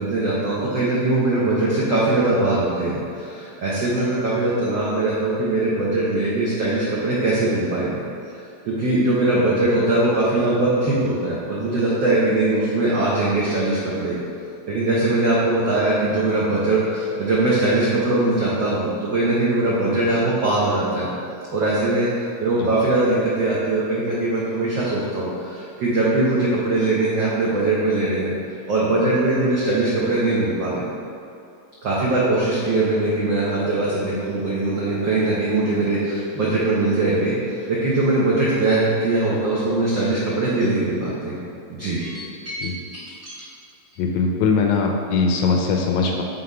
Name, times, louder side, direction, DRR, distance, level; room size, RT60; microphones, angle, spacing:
voice 1, 0.0-8.0 8.6-14.1 14.7-21.1 21.5-28.3 28.7-30.8 31.8-41.4 41.7-43.4, right 2 dB, 80° right, -7 dB, 1.0 m, -21 dB
voice 2, 44.0-46.2, left 4 dB, 80° left, 2 dB, 1.7 m, -21 dB
5.9 x 4.0 x 4.8 m, 2.6 s
omnidirectional pair, 3.3 m